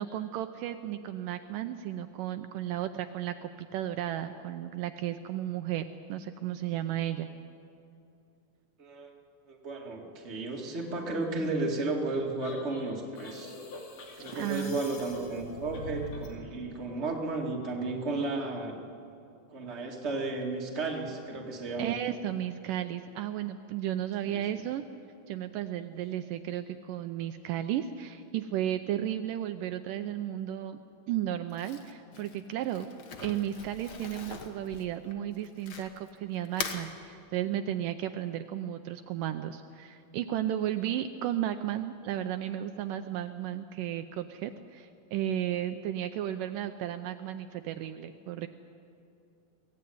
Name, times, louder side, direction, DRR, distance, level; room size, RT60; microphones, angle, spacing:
voice 1, 0.0-7.3 14.3-14.8 21.8-24.8 25.3-30.8 31.1-32.9 33.2-48.5, right 11 dB, 80° right, 8 dB, 2.2 m, -34 dB
voice 2, 9.5-13.5 14.2-18.8 19.5-21.9 24.2-24.6, right 3 dB, 20° right, 0 dB, 2.1 m, -33 dB
sound 1, 12.4-16.4, left 2 dB, 65° left, 4.0 m, -43 dB
Crumpling crinkling, 31.5-36.1 36.4-36.8, left 5 dB, 80° left, 0.9 m, -41 dB
23.0 x 17.0 x 9.4 m, 2.6 s
omnidirectional pair, 4.0 m